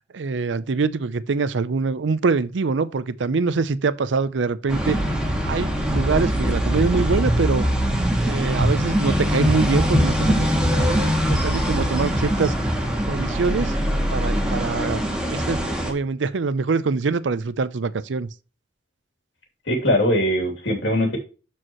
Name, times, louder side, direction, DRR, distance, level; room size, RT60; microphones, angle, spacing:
voice 1, 0.1-5.0 5.4-7.6 8.2-11.0 11.3-12.5 13.1-13.8 14.1-15.0 15.3-18.3, right 4 dB, 90° right, 0.5 m, -24 dB
sound 1, 4.7-15.9, equal, 5° right, 1.7 m, -22 dB
voice 2, 19.7-21.2, equal, 85° left, 2.6 m, -21 dB
12.5 x 4.6 x 3.0 m
head